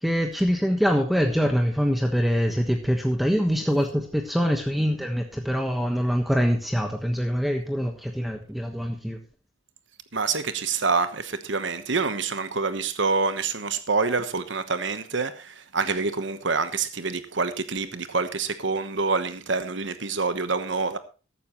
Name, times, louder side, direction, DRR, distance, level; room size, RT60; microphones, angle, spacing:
voice 1, 0.0-9.2, equal, ahead, 1.3 m, -24 dB
voice 2, 10.1-21.0, right 4 dB, 65° right, 1.1 m, -26 dB
14.5 x 11.5 x 3.1 m
head